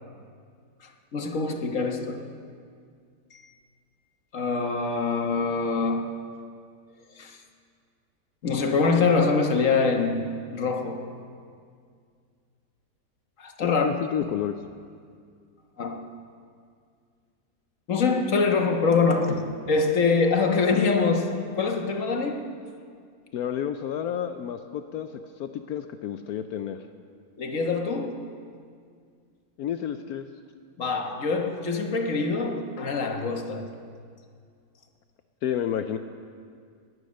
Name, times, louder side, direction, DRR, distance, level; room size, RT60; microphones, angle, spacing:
voice 1, 1.1-2.3 3.3-3.5 4.3-6.2 7.2-7.4 8.4-11.1 13.4-13.9 15.8-16.1 17.9-22.5 27.4-28.3 30.8-33.7, left 4 dB, 55° left, 1.6 m, -24 dB
voice 2, 13.6-14.6 23.3-26.8 29.6-30.3 35.4-36.0, left 9 dB, 70° left, 1.1 m, -30 dB
20.5 x 9.4 x 6.4 m
omnidirectional pair, 1.7 m